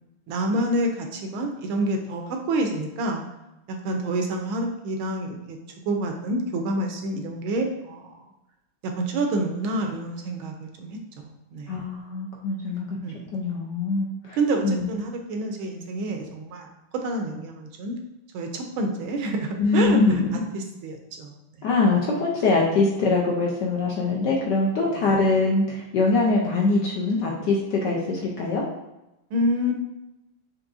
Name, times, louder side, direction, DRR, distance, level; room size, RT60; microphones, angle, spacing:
voice 1, 0.3-3.2 3.7-5.6 5.9-8.3 8.8-11.8 13.0-13.4 14.4-16.7 17.0-18.0 18.3-20.0 20.5-21.3 24.9-25.4 29.3-29.7, right 1 dB, 75° right, 3 dB, 1.3 m, -28 dB
voice 2, 11.7-13.0 13.3-14.4 14.6-14.9 19.6-20.3 21.6-28.6, left 3 dB, 70° left, -2 dB, 1.1 m, -23 dB
5.9 x 3.0 x 2.5 m, 0.94 s
omnidirectional pair, 2.4 m